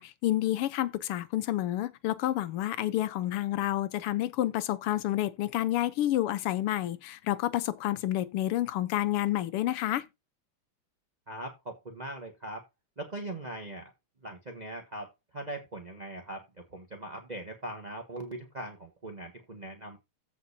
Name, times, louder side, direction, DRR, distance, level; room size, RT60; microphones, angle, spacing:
voice 1, 0.0-10.1, left 14 dB, 90° left, 1.7 m, -29 dB
voice 2, 11.3-12.6 13.0-13.9 14.2-16.4 16.7-20.0, right 1 dB, 20° right, 1.4 m, -40 dB
15.0 x 5.2 x 2.7 m
omnidirectional pair, 2.4 m